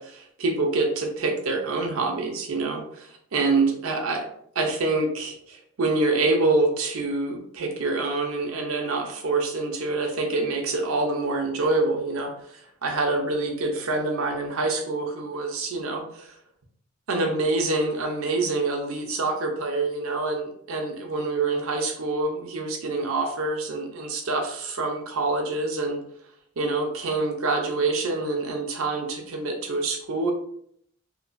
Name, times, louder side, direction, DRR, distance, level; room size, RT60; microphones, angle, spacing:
voice 1, 0.0-4.3 4.6-16.4 17.1-26.0 26.6-30.3, right 3 dB, 80° right, 2 dB, 0.6 m, -26 dB
2.9 x 2.2 x 2.5 m, 0.67 s
head